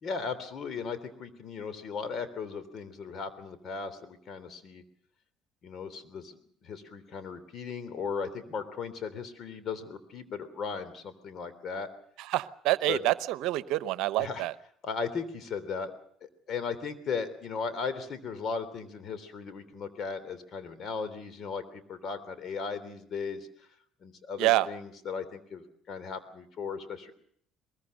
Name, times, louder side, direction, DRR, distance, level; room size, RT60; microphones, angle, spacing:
voice 1, 0.0-4.8 5.6-11.9 12.9-13.0 14.2-14.4 14.8-15.9 16.5-23.5 24.0-27.1, left 5 dB, 50° left, 12 dB, 3.3 m, -37 dB
voice 2, 12.2-14.5 24.4-24.7, right 17 dB, 70° right, 16 dB, 0.9 m, -27 dB
22.5 x 21.5 x 6.6 m, 0.64 s
hypercardioid pair, 65°, 0 cm